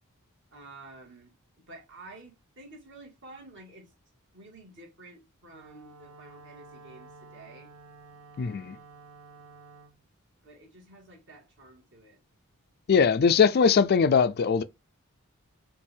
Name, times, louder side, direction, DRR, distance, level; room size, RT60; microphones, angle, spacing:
voice 1, 0.5-1.4 1.7-3.9 4.3-7.7 10.4-12.2, right 2 dB, 55° right, 1.9 m, -50 dB
Wind instrument woodwind instrument, 5.5-10.0, right 3 dB, 75° right, 0.9 m, -51 dB
voice 2, 8.4-8.8 12.9-14.6, left 6 dB, 45° left, 0.3 m, -21 dB
5.3 x 2.5 x 3.3 m
head